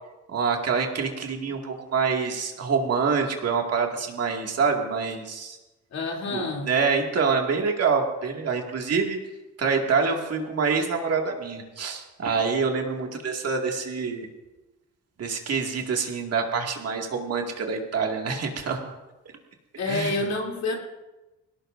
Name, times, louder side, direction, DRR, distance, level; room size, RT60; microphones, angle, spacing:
voice 1, 0.3-5.6 6.3-9.2 9.6-14.3 15.2-18.9 19.9-20.2, right 5 dB, 55° right, 2 dB, 2.2 m, -26 dB
voice 2, 5.9-6.7 19.8-20.8, left 3 dB, 60° left, 0 dB, 3.1 m, -28 dB
21.0 x 17.5 x 2.6 m, 1.1 s
cardioid pair, 90°, 30 cm